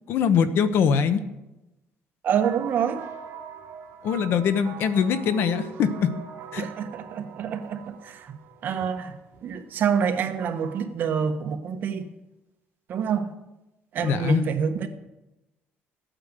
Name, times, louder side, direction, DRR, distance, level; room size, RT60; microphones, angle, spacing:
voice 1, 0.1-1.2 4.0-6.1 6.5-6.6 14.0-14.4, left 7 dB, 60° left, 12 dB, 0.9 m, -22 dB
voice 2, 2.2-3.0 6.6-8.4 8.6-12.1 12.9-13.3 13.9-14.9, right 7 dB, 45° right, 6 dB, 1.2 m, -27 dB
sound 1, 2.4-10.9, right 8 dB, 65° right, 1.6 m, -42 dB
14.0 x 8.9 x 6.6 m, 0.99 s
cardioid pair, 170°, 4 cm